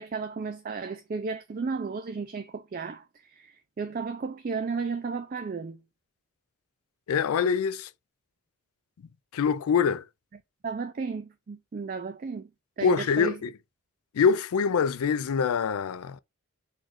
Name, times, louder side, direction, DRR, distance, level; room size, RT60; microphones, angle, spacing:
voice 1, 0.0-5.8 10.6-12.5 12.8-13.4, right 5 dB, 40° right, 0.3 m, -34 dB
voice 2, 7.1-7.9 9.3-10.0 12.8-13.5 14.1-16.2, left 6 dB, 80° left, 0.4 m, -24 dB
4.2 x 2.4 x 4.4 m
head